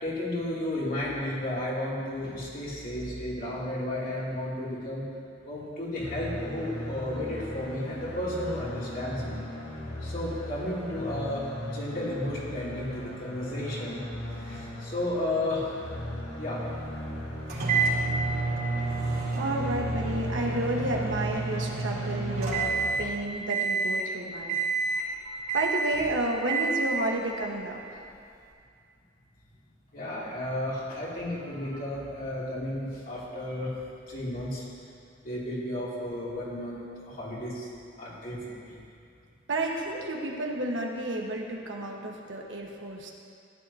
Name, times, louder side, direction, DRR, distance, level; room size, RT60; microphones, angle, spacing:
voice 1, 0.0-5.0 5.5-9.4 10.0-14.0 14.4-15.7 16.4-16.6 24.3-24.4 25.2-25.6 29.9-33.7 34.1-34.6 35.2-37.7 38.0-38.8, left 1 dB, 50° left, -7 dB, 2.8 m, -33 dB
sound 1, 6.0-23.0, left 1 dB, 70° left, 2.1 m, -38 dB
sound 2, 17.5-23.1 23.5-24.1 24.5-25.1 25.5-26.1 26.5-27.1, right 4 dB, 60° right, 3.0 m, -29 dB
voice 2, 19.3-24.6 25.5-28.1 39.5-43.1, right 1 dB, 90° right, 0 dB, 1.3 m, -31 dB
15.0 x 10.5 x 2.8 m, 2.4 s
head